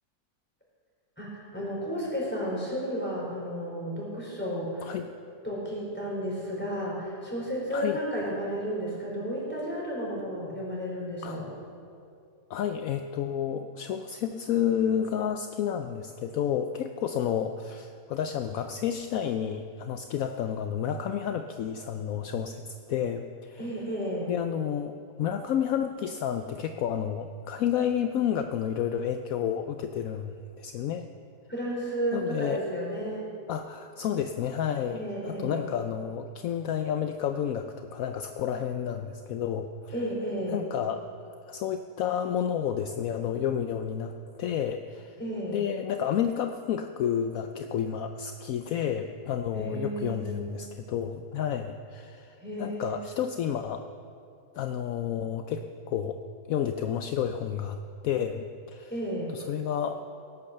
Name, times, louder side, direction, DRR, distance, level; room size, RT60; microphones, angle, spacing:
voice 1, 1.2-4.9 5.4-11.5 23.6-24.3 31.5-33.3 34.9-35.6 39.9-40.6 45.2-45.6 49.5-50.5 52.4-53.0 58.9-59.4, equal, 5° left, -4 dB, 4.4 m, -33 dB
voice 2, 12.5-23.7 24.3-31.0 32.1-32.6 33.5-39.9 40.5-41.0 41.5-45.2 45.5-53.9 54.5-56.2 56.5-57.8 58.0-58.9 59.3-60.0, left 9 dB, 70° left, 7 dB, 1.0 m, -30 dB
17.0 x 9.7 x 6.7 m, 2.4 s
omnidirectional pair, 1.6 m